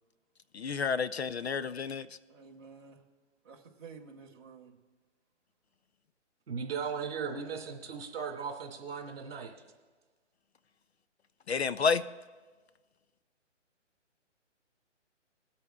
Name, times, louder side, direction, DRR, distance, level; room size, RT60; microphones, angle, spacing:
voice 1, 0.5-2.1 11.5-12.0, left 5 dB, 60° left, 0.5 m, -30 dB
voice 2, 2.3-3.0 3.4-4.7, right 5 dB, 20° right, 1.1 m, -51 dB
voice 3, 6.5-9.5, right 6 dB, 50° right, 2.1 m, -37 dB
22.0 x 8.5 x 2.3 m
hypercardioid pair, 175°, 37 cm